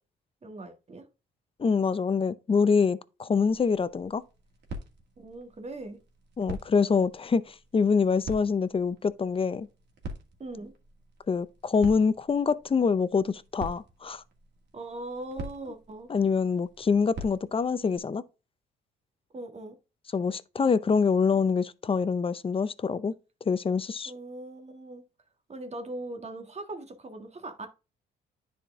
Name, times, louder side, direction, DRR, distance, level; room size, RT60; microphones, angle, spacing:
voice 1, 0.4-1.1 5.2-6.0 10.4-10.7 14.7-16.1 19.3-19.8 24.1-25.0 25.5-27.7, right 2 dB, 35° right, 1.7 m, -40 dB
voice 2, 1.6-4.2 6.4-9.7 11.3-14.2 16.1-18.2 20.1-23.1 23.5-24.1, left 5 dB, 25° left, 0.6 m, -25 dB
sound 1, 3.5-18.0, right 1 dB, 60° right, 2.3 m, -45 dB
10.0 x 4.3 x 3.6 m
cardioid pair, 90°, 20 cm